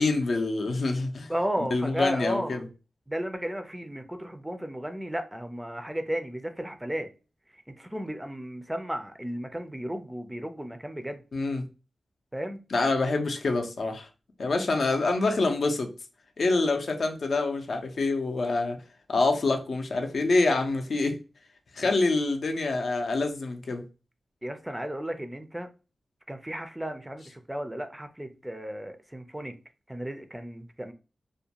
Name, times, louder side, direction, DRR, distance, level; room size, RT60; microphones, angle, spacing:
voice 1, 0.0-1.3 1.7-2.7 11.3-11.6 12.7-14.1 14.4-15.9 16.4-18.8 19.1-21.2 21.7-23.8, left 3 dB, 65° left, 0.5 m, -26 dB
voice 2, 1.3-2.6 3.1-7.1 7.8-11.2 12.3-12.6 21.8-21.9 24.4-25.7 26.3-29.5 29.9-30.9, equal, 10° right, 0.4 m, -34 dB
2.4 x 2.2 x 2.8 m
wide cardioid pair, 75°, 0 cm